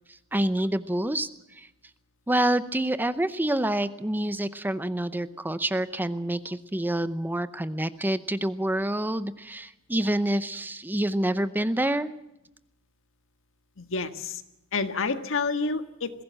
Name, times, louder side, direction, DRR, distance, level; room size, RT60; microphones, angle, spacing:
voice 1, 0.3-1.7 2.3-12.1, right 1 dB, 10° right, 13 dB, 0.7 m, -27 dB
voice 2, 13.8-14.4 14.7-16.1, left 4 dB, 65° left, 9 dB, 1.6 m, -29 dB
21.5 x 16.5 x 7.6 m, 0.90 s
head